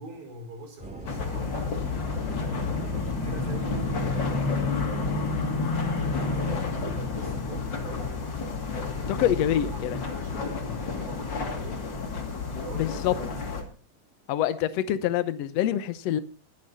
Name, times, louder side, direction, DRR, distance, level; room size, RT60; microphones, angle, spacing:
voice 1, 0.0-1.8 2.3-5.7 6.2-8.3 8.9-11.9 12.6-13.5, right 1 dB, 80° right, 7.1 m, -44 dB
sound 1, 0.8-12.9, right 2 dB, ahead, 2.1 m, -43 dB
sound 2, 1.1-13.6, left 4 dB, 35° left, 2.7 m, -30 dB
voice 2, 9.1-10.0 12.7-13.1 14.3-16.2, left 11 dB, 75° left, 1.5 m, -26 dB
22.5 x 8.8 x 4.1 m
omnidirectional pair, 4.1 m